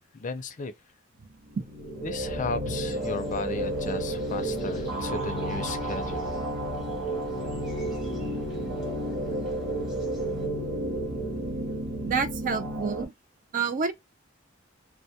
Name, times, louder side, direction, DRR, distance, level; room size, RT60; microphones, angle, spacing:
voice 1, 0.1-0.7 2.0-6.3, left 3 dB, 40° left, 0.5 m, -35 dB
sound 1, 1.5-13.0, right 1 dB, 75° right, 0.8 m, -31 dB
sound 2, 2.9-10.5, left 1 dB, ahead, 0.8 m, -47 dB
voice 2, 12.1-13.1 13.5-13.9, right 5 dB, 40° right, 0.3 m, -28 dB
2.2 x 2.1 x 2.7 m
head